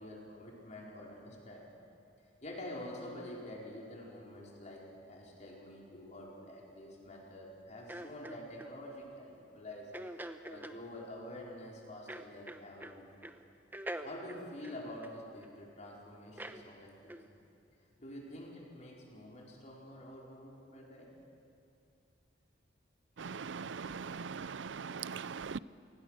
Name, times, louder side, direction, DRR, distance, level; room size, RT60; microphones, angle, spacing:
voice 1, 0.0-1.7 2.4-9.9 10.5-13.3 14.0-17.4 18.0-21.1, left 1 dB, 40° left, 4.8 m, -47 dB
sound 1, 7.9-8.7 9.9-10.8 12.1-13.0 13.2-13.4 13.7-15.5 16.4-16.6 17.1-17.3, right 1 dB, 10° right, 0.9 m, -44 dB
voice 2, 23.2-25.6, right 5 dB, 80° right, 0.5 m, -41 dB
28.0 x 20.0 x 6.6 m
head